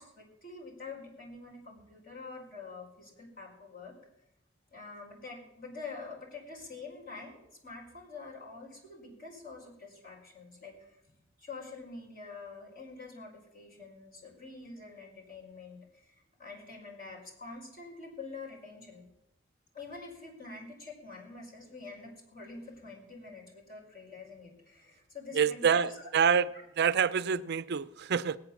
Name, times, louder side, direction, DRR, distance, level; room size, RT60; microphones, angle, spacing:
voice 1, 0.0-4.0 4.7-19.1 19.7-26.1 26.5-26.6, left 3 dB, 50° left, -2 dB, 5.0 m, -46 dB
voice 2, 25.3-26.5 26.8-28.4, right 7 dB, 55° right, 14 dB, 0.5 m, -26 dB
19.0 x 8.8 x 7.1 m, 0.88 s
head